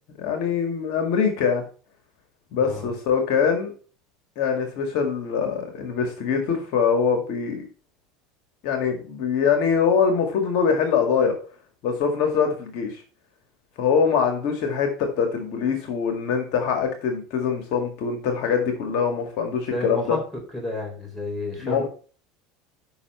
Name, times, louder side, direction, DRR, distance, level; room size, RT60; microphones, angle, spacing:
voice 1, 0.2-1.6 2.5-3.7 4.4-7.6 8.6-11.3 11.8-13.0 13.8-20.2 21.6-21.9, left 6 dB, 65° left, 5 dB, 1.9 m, -23 dB
voice 2, 2.6-2.9 19.6-20.2 20.5-21.9, left 1 dB, 10° left, 0 dB, 4.2 m, -31 dB
7.1 x 5.7 x 5.4 m, 0.39 s
supercardioid pair, 110°, 0 cm